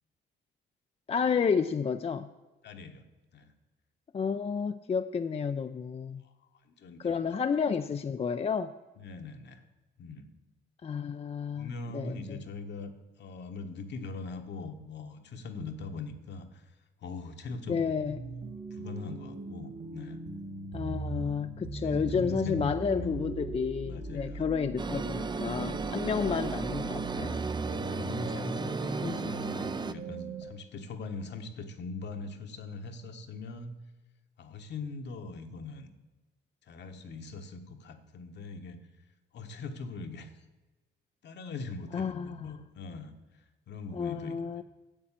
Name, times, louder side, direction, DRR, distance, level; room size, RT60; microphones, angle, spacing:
voice 1, 1.1-2.3 4.1-6.2 7.0-8.7 10.8-12.4 17.7-18.2 20.7-27.4 29.0-29.3 41.9-42.4 43.9-44.6, left 6 dB, 30° left, 9 dB, 0.4 m, -31 dB
voice 2, 2.6-3.0 3.3-3.5 6.2-7.5 9.0-9.6 10.0-10.3 11.5-16.7 17.0-17.9 18.7-20.2 21.8-23.4 23.8-24.5 25.5-25.8 28.0-33.8 34.4-35.9 36.7-38.8 39.3-40.4 41.2-43.1 43.7-44.6, left 3 dB, 60° left, 6 dB, 1.3 m, -41 dB
sound 1, 18.0-30.4, right 3 dB, 55° right, 2.2 m, -39 dB
sound 2, 24.8-29.9, right 4 dB, 20° right, 0.5 m, -35 dB
8.8 x 7.9 x 7.4 m, 1.1 s
cardioid pair, 90°, 20 cm